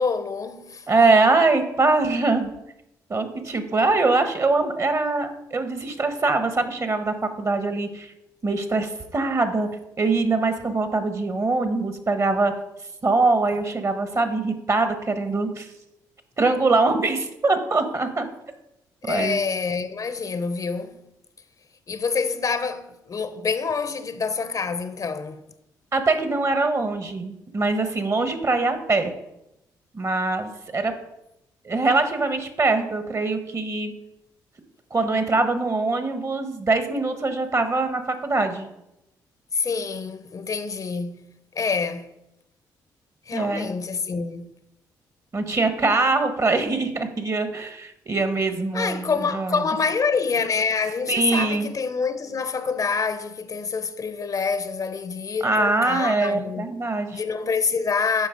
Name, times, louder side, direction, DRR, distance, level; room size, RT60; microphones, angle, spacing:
voice 1, 0.0-0.9 19.0-21.0 21.9-25.4 39.5-41.2 41.5-42.1 43.3-44.5 48.7-56.7 57.1-58.3, left 5 dB, 45° left, 0.7 m, -26 dB
voice 2, 0.9-2.5 3.1-8.1 8.4-9.7 10.0-12.5 13.0-15.7 16.4-18.3 19.0-19.4 25.9-29.1 29.9-30.9 31.6-33.9 34.9-38.7 43.3-43.7 45.3-49.6 51.1-51.7 55.4-57.2, right 3 dB, 40° right, 1.3 m, -23 dB
8.5 x 5.5 x 5.1 m
supercardioid pair, 60°, 8 cm